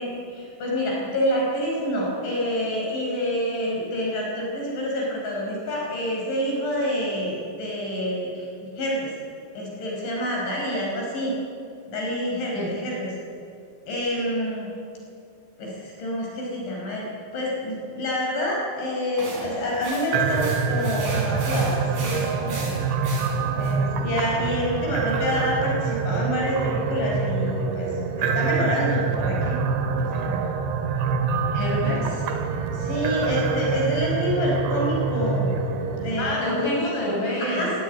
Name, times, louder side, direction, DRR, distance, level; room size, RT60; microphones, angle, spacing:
voice 1, 0.0-8.5 8.8-9.1 9.6-11.3 11.9-13.1 13.9-14.7 15.6-17.1 17.3-22.7 23.6-27.9 28.2-29.6 29.9-30.4 32.7-35.5 36.0-36.5 37.4-37.7, left 1 dB, 60° left, -2 dB, 7.4 m, -27 dB
sound 1, 19.2-23.7, right 2 dB, 45° right, 6.8 m, -38 dB
sound 2, 20.1-36.3, right 5 dB, 70° right, 3.9 m, -25 dB
voice 2, 31.5-32.3 36.2-37.7, left 1 dB, 25° left, -2 dB, 7.2 m, -27 dB
29.5 x 18.5 x 9.3 m, 2.6 s
omnidirectional pair, 5.9 m